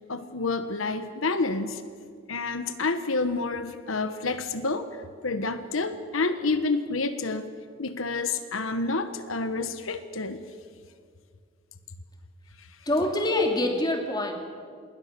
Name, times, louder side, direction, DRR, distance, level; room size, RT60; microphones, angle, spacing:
voice 1, 0.1-1.8 2.3-7.5 7.8-10.4 12.6-12.7, left 3 dB, 85° left, 10 dB, 1.2 m, -29 dB
voice 2, 12.9-14.3, left 1 dB, 20° left, 3 dB, 2.8 m, -25 dB
27.5 x 21.0 x 6.8 m, 2.1 s
head